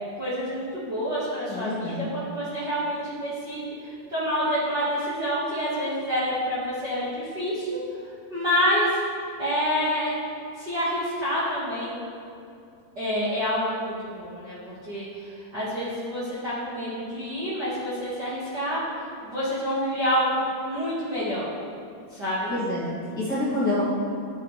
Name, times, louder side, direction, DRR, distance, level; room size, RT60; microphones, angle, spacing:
voice 1, 0.2-7.8 8.3-8.9 9.4-10.1 10.6-12.0 12.9-18.8 19.2-21.5 22.1-22.5, equal, 40° right, -11 dB, 1.5 m, -28 dB
voice 2, 1.5-2.0 22.5-23.8, left 2 dB, 35° left, -10 dB, 2.1 m, -27 dB
12.5 x 7.3 x 3.3 m, 2.4 s
omnidirectional pair, 4.2 m